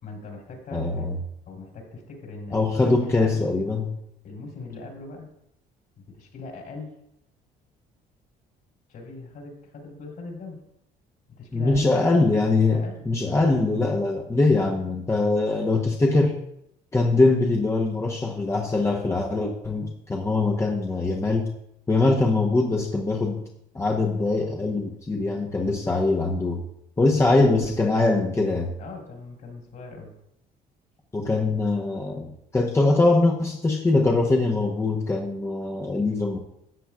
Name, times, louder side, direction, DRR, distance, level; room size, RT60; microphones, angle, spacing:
voice 1, 0.0-1.1 1.5-3.5 4.2-5.4 6.0-7.0 8.9-10.6 11.3-12.2 12.7-13.1 28.8-30.1, left 3 dB, 60° left, 0 dB, 3.5 m, -40 dB
voice 2, 0.7-1.1 2.5-3.9 11.5-16.4 16.9-21.5 21.9-23.4 23.7-26.6 27.0-28.7 31.1-36.4, left 3 dB, 15° left, -1 dB, 1.0 m, -22 dB
13.5 x 8.0 x 2.4 m, 0.78 s
cardioid pair, 110°, 17 cm